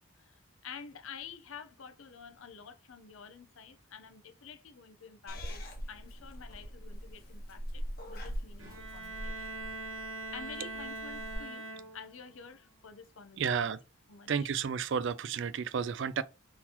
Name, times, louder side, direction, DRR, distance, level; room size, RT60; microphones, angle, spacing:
voice 1, 0.0-5.6 5.9-9.6 10.3-11.7 11.9-13.7 14.1-14.5, left 6 dB, 75° left, 0.7 m, -49 dB
Purr / Meow, 5.3-11.3, equal, 45° left, 1.2 m, -42 dB
Bowed string instrument, 8.6-12.3, right 2 dB, 75° right, 1.2 m, -42 dB
voice 2, 13.4-13.8 14.3-16.2, right 6 dB, 60° right, 0.4 m, -32 dB
4.0 x 2.9 x 4.2 m
head